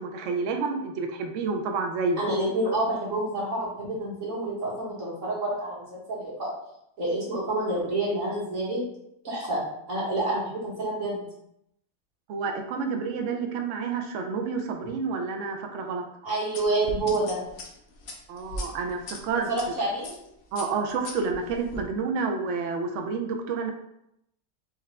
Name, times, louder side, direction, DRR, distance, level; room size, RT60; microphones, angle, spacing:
voice 1, 0.0-2.3 12.3-16.0 18.3-19.5 20.5-23.7, right 4 dB, 85° right, 4 dB, 0.6 m, -29 dB
voice 2, 2.2-6.5 7.0-8.8 9.2-11.2 16.2-17.4 19.5-20.1, right 2 dB, 45° right, -6 dB, 2.0 m, -28 dB
sound 1, 16.5-19.7 20.0-20.3 20.6-21.8, left 1 dB, 55° left, 0.7 m, -38 dB
4.4 x 3.2 x 3.6 m, 0.78 s
omnidirectional pair, 1.9 m